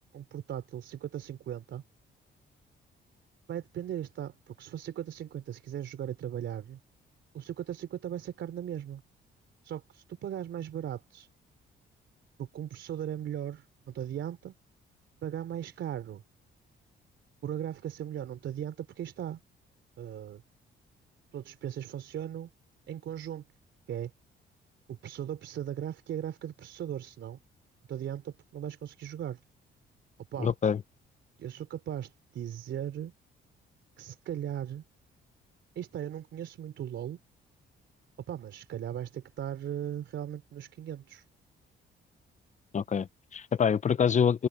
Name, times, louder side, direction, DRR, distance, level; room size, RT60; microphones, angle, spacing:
voice 1, 0.1-1.8 3.5-6.8 7.3-9.0 9.6-11.3 12.4-14.5 15.2-16.2 17.4-19.4 20.0-20.4 21.3-22.5 22.9-23.4 23.9-24.1 24.9-27.4 27.9-29.4 30.3-30.5 31.4-33.1 34.0-34.8 35.8-37.2 38.3-41.3, right 10 dB, 70° right, 3.9 m, -38 dB
voice 2, 30.4-30.8 42.7-44.5, left 7 dB, 35° left, 0.8 m, -26 dB
cardioid pair, 90°, 20 cm